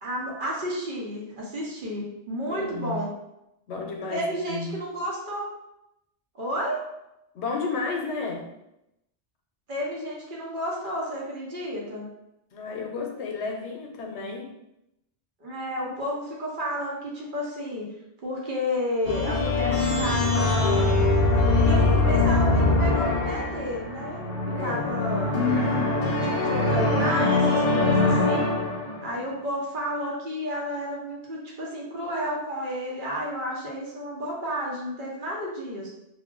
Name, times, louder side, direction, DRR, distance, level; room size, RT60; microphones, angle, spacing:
voice 1, 0.0-3.1 4.1-5.4 6.3-6.8 9.7-12.1 15.4-17.9 18.2-21.1 21.6-25.4 26.0-28.6 29.0-35.9, equal, 55° right, -3 dB, 0.8 m, -31 dB
voice 2, 2.5-3.0 3.7-4.7 7.3-8.5 12.5-14.5 24.5-24.8, left 4 dB, 80° left, 2 dB, 0.9 m, -32 dB
sound 1, 19.0-29.1, left 2 dB, 55° left, 0.8 m, -23 dB
2.4 x 2.1 x 3.6 m, 0.87 s
omnidirectional pair, 1.1 m